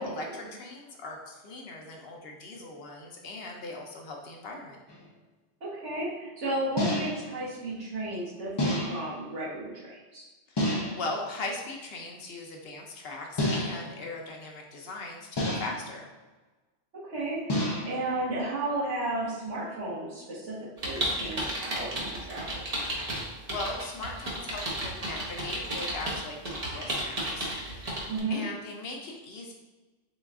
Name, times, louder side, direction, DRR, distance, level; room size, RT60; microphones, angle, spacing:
voice 1, 0.0-4.8 10.5-16.1 23.1-29.5, left 2 dB, 65° left, 1 dB, 0.8 m, -39 dB
sound 1, 4.9-5.0 6.8-7.3 8.6-9.2 10.6-11.1 13.4-14.0 15.4-15.9 17.5-18.1, left 1 dB, 30° left, 0.5 m, -29 dB
voice 2, 5.6-10.3 16.9-22.6 28.1-28.5, right 2 dB, 85° right, -8 dB, 1.6 m, -33 dB
sound 2, 20.8-28.2, right 1 dB, 35° right, 0.8 m, -33 dB
4.0 x 2.3 x 3.5 m, 1.2 s
omnidirectional pair, 1.2 m